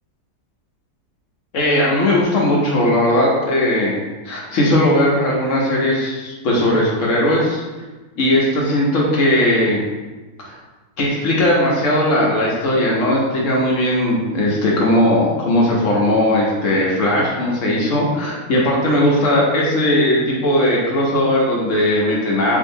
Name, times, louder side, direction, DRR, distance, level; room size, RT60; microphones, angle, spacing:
voice 1, 1.5-3.9 4.2-7.6 8.2-9.8 10.4-10.5 11.0-22.6, left 1 dB, 60° left, -4 dB, 1.0 m, -18 dB
4.7 x 2.6 x 2.6 m, 1.2 s
omnidirectional pair, 1.8 m